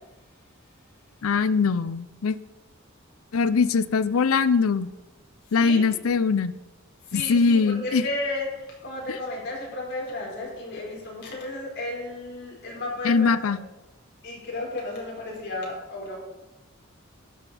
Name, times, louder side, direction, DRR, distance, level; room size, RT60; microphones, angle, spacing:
voice 1, 1.2-2.4 3.3-4.9 5.5-6.5 7.1-8.0 13.0-13.6, left 5 dB, 90° left, 15 dB, 0.5 m, -22 dB
voice 2, 5.5-5.9 7.1-13.3 14.2-16.1, left 2 dB, 55° left, -3 dB, 4.4 m, -33 dB
12.0 x 9.0 x 4.2 m, 1.0 s
head